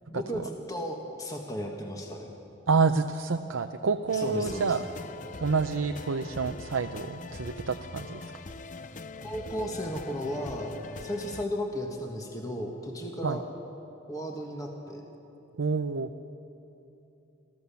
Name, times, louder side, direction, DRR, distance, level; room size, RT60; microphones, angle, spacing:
voice 1, 0.1-2.3 4.1-4.8 9.2-10.7 11.0-13.4 14.1-15.0, equal, 15° left, 1 dB, 1.6 m, -35 dB
voice 2, 2.7-4.8 5.4-8.2 13.2-13.4 15.6-16.1, right 4 dB, 85° right, 6 dB, 0.6 m, -28 dB
sound 1, 4.1-11.5, left 3 dB, 40° left, 0.6 m, -42 dB
26.5 x 14.5 x 7.0 m, 2.9 s
head